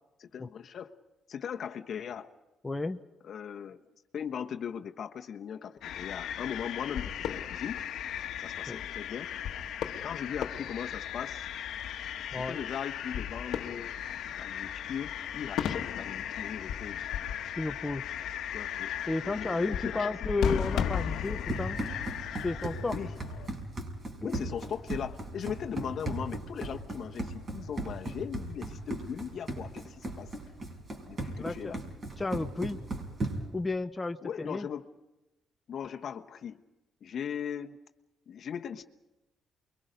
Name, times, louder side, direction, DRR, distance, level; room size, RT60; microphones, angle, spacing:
voice 1, 0.2-0.9 1.3-2.3 3.2-3.8 4.1-7.8 8.4-9.3 10.0-11.5 12.3-14.0 14.4-17.1 18.5-18.9 19.2-20.1 22.9-23.1 24.2-30.3 30.9-31.8 34.2-34.9 35.7-36.6 37.0-37.8 38.3-38.8, left 8 dB, 60° left, 6 dB, 1.2 m, -39 dB
voice 2, 2.6-3.0 8.7-8.8 12.3-12.6 17.6-18.0 19.1-21.8 22.4-23.0 24.2-24.3 31.4-31.8 32.2-32.8 33.5-34.7, left 3 dB, 20° left, 7 dB, 0.9 m, -32 dB
sound 1, 5.8-23.5, left 9 dB, 80° left, 1.3 m, -36 dB
Run, 21.1-33.6, right 2 dB, 40° right, 5.4 m, -37 dB
29.0 x 23.0 x 5.2 m, 1.0 s
cardioid pair, 90°, 0 cm